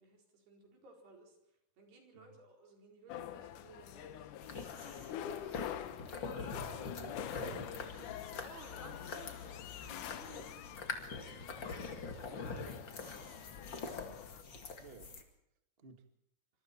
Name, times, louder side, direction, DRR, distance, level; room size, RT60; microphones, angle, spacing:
voice 1, 0.0-4.4 4.9-5.6 8.3-10.7 11.8-12.5 13.6-13.9, right 3 dB, 85° right, 1 dB, 6.5 m, -58 dB
sound 1, 3.1-14.4, left 11 dB, 70° left, 2.1 m, -47 dB
sound 2, 4.4-15.2, left 4 dB, 35° left, 2.2 m, -45 dB
sound 3, 5.5-14.1, left 13 dB, 85° left, 3.0 m, -57 dB
voice 2, 6.3-8.4 14.0-14.2 14.8-15.1 15.8-16.0, right 4 dB, 45° right, 6 dB, 0.7 m, -55 dB
26.0 x 25.0 x 4.5 m, 0.80 s
omnidirectional pair, 4.5 m